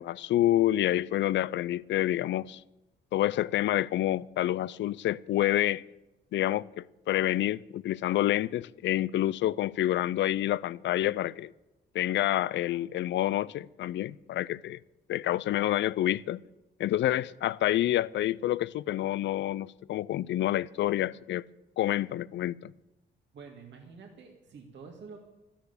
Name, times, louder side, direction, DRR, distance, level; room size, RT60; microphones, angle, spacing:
voice 1, 0.0-2.6 3.1-5.8 6.3-11.5 11.9-14.8 15.1-16.4 16.8-21.4 21.8-22.7, left 13 dB, 70° left, 0.5 m, -28 dB
voice 2, 23.3-25.2, right 5 dB, 65° right, 2.2 m, -48 dB
13.0 x 10.0 x 8.1 m
cardioid pair, 90°, 20 cm